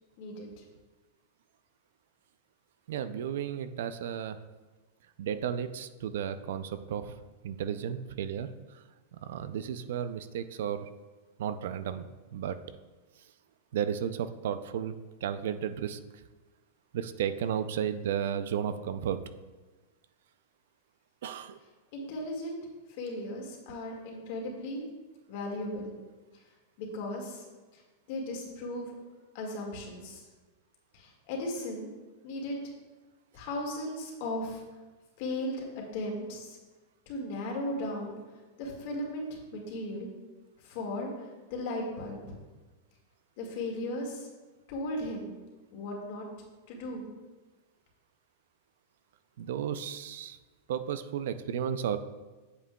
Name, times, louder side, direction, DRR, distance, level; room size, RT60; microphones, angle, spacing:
voice 1, 0.2-0.6 21.9-22.6 23.0-24.8 25.3-25.9 26.8-27.5 27.7-27.8 28.1-29.0 29.3-30.2 30.9-31.9 32.2-32.7 33.3-34.6 35.2-35.7 35.9-36.6 37.1-38.1 38.6-40.1 40.6-41.1 41.5-42.2 43.4-44.3 44.7-45.3 45.7-46.2 46.7-47.0, left 1 dB, 50° left, 0 dB, 1.9 m, -36 dB
voice 2, 2.9-4.4 5.2-7.1 7.4-8.8 9.2-10.9 11.4-12.6 13.7-15.0 15.2-16.0 16.9-19.2 21.2-21.6 23.7-23.8 49.4-50.4 50.7-52.0, right 9 dB, 70° right, 12 dB, 0.4 m, -33 dB
8.1 x 7.4 x 2.3 m, 1.2 s
supercardioid pair, 155°, 0 cm